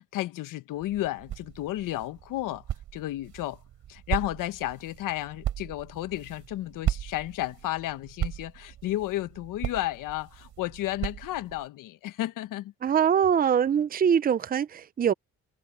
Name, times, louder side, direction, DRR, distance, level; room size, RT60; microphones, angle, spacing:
voice 1, 0.0-2.6 2.9-3.6 3.9-12.7, left 15 dB, 80° left, 1.3 m, -32 dB
sound 1, 0.7-11.7, right 11 dB, 65° right, 4.4 m, -37 dB
voice 2, 12.8-15.1, right 8 dB, 30° right, 0.6 m, -23 dB
cardioid pair, 105°, 32 cm